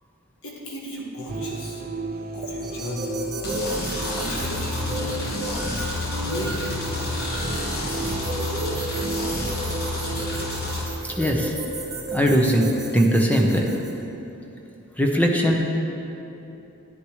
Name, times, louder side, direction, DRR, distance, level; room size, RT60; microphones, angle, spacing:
voice 1, 0.4-1.8 2.3-3.2 4.1-5.0 5.6-7.3, left 1 dB, 80° left, -3 dB, 1.6 m, -36 dB
sound 1, 1.3-12.6, right 2 dB, 45° right, 0.6 m, -34 dB
sound 2, 2.6-13.9, right 2 dB, 20° right, 1.6 m, -35 dB
sound 3, 3.4-10.8, left 1 dB, 50° left, 1.5 m, -29 dB
voice 2, 11.2-11.5 12.1-12.7 12.9-13.7 15.0-15.6, equal, 5° left, 0 dB, 0.9 m, -19 dB
11.0 x 10.5 x 3.2 m, 2.9 s
head